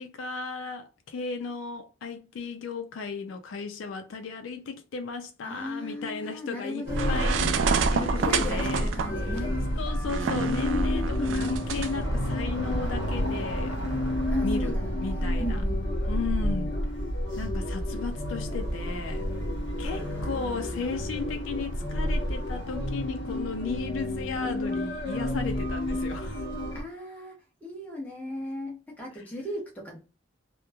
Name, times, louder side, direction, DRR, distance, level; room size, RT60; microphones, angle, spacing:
voice 1, 0.0-7.5 7.9-8.9 9.8-13.8 14.4-14.8 15.0-15.6 16.1-16.7 17.4-19.2 19.8-26.5, left 4 dB, 85° left, 0.4 m, -35 dB
voice 2, 5.4-7.4 8.0-9.6 10.7-11.4 14.3-15.8 16.3-16.7 19.8-21.0 26.7-30.0, left 1 dB, 10° left, 0.9 m, -37 dB
sound 1, 6.9-26.8, equal, 60° left, 1.1 m, -29 dB
sound 2, 6.9-11.9, right 6 dB, 75° right, 0.3 m, -29 dB
sound 3, 9.9-15.5 16.0-16.8 17.2-17.3 17.4-18.6 19.0-19.4 20.2-20.5 21.3-21.5 21.8-22.0, right 2 dB, 35° right, 0.6 m, -51 dB
3.0 x 2.1 x 2.2 m
head